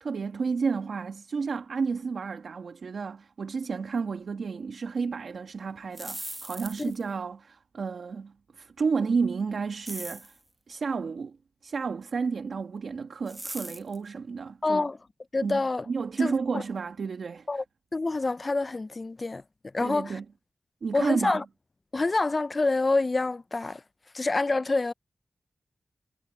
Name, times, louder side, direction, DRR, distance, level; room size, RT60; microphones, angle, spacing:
voice 1, 0.0-10.4 10.7-11.4 11.6-14.9 15.4-17.6 19.8-20.2 20.8-21.4, right 5 dB, 85° right, 1.5 m, -31 dB
sound 1, 5.8-7.1 9.9-10.4 13.3-14.0, right 1 dB, 20° right, 1.2 m, -39 dB
voice 2, 14.6-15.0 15.3-15.9 16.2-16.6 17.5-17.6 17.9-19.4 19.7-20.2 20.9-21.4 21.9-23.8 24.1-24.9, left 3 dB, 40° left, 0.4 m, -27 dB
wide cardioid pair, 80°, 0 cm